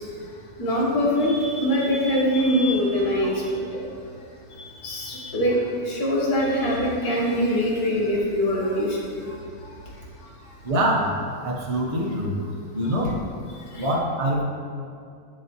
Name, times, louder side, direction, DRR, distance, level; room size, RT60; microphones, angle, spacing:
voice 1, 0.0-3.9 4.2-10.5 11.7-11.8 12.8-13.0 13.5-13.9, equal, 85° left, -3 dB, 1.8 m, -24 dB
voice 2, 10.6-11.2 11.4-12.4 12.7-13.1 13.8-14.4, right 1 dB, 25° right, -2 dB, 0.9 m, -24 dB
9.1 x 6.9 x 3.0 m, 2.4 s
omnidirectional pair, 1.6 m